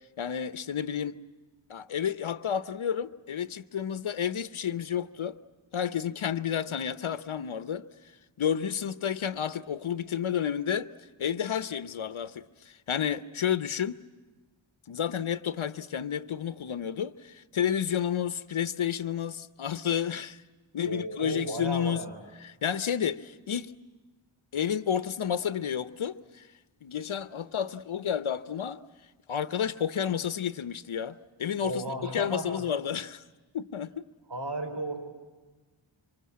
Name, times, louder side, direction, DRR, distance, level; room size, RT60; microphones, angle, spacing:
voice 1, 0.2-1.2 1.7-5.4 5.7-7.8 8.4-10.9 11.2-14.0 14.9-20.4 20.7-22.0 22.4-23.7 24.5-26.5 26.8-28.8 29.3-33.2 33.5-34.0, left 8 dB, 80° left, 0.8 m, -31 dB
voice 2, 20.8-22.2 31.6-32.6 34.3-35.1, right 1 dB, 60° right, 4.8 m, -34 dB
26.0 x 24.5 x 8.5 m
wide cardioid pair, 60°, 48 cm